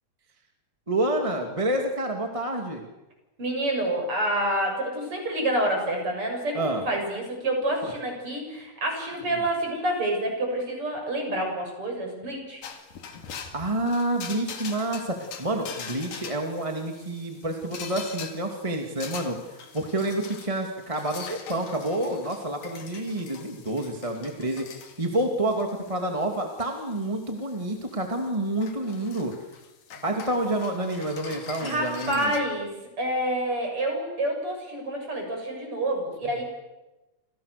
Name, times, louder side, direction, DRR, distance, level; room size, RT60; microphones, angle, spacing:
voice 1, 0.9-2.8 6.5-6.8 7.8-7.9 13.5-24.7 25.0-29.3 30.0-32.3 36.2-36.4, right 1 dB, 10° right, 3 dB, 1.7 m, -28 dB
voice 2, 3.4-12.6 31.6-32.7 33.0-36.4, right 1 dB, 35° right, 2 dB, 8.2 m, -28 dB
sound 1, 12.6-32.4, left 6 dB, 60° left, 3.8 m, -43 dB
29.0 x 27.5 x 6.9 m, 1.1 s
omnidirectional pair, 4.3 m